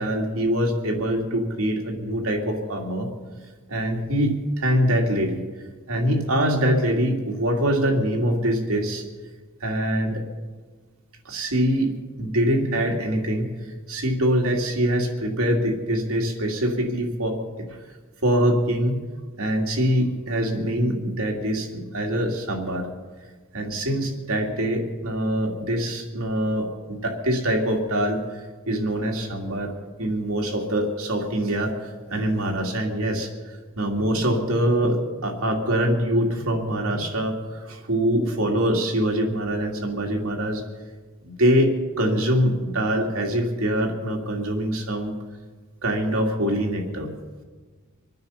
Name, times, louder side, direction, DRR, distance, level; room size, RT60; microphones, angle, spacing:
voice 1, 0.0-3.1 3.7-5.4 5.9-9.0 9.6-10.2 11.2-11.9 12.2-13.5 13.9-17.4 17.7-17.8 18.2-19.0 19.4-22.9 23.5-28.2 28.7-29.7 30.0-31.7 32.1-33.3 33.8-40.6 41.2-45.1 45.8-47.1, equal, 85° right, 1 dB, 2.6 m, -24 dB
25.5 x 9.5 x 5.7 m, 1.4 s
head